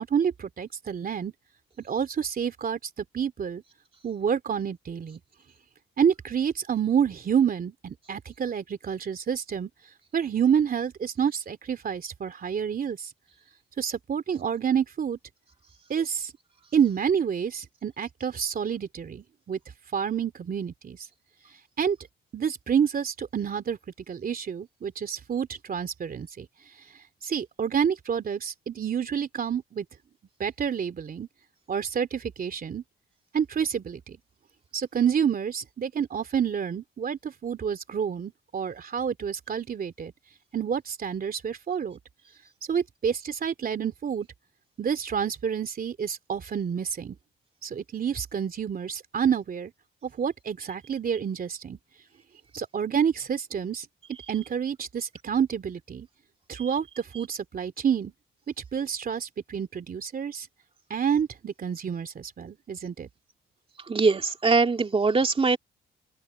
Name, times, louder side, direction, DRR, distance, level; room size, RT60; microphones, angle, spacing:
voice 1, 0.0-1.3 1.8-3.6 4.0-5.2 6.0-9.7 10.1-13.1 13.8-15.2 15.9-16.3 16.7-19.6 19.9-21.0 21.8-22.0 22.3-23.8 24.1-26.5 27.2-29.8 30.4-31.3 31.7-32.8 33.3-34.2 34.7-40.1 40.5-42.0 42.7-44.3 44.8-47.2 47.6-49.7 50.0-51.8 52.5-53.9 54.3-56.1 56.5-58.1 58.7-60.5 60.9-63.1, right 7 dB, 45° right, 3.0 m, -28 dB
voice 2, 63.9-65.6, right 4 dB, 30° right, 2.6 m, -22 dB
open air
cardioid pair, 90°, 20 cm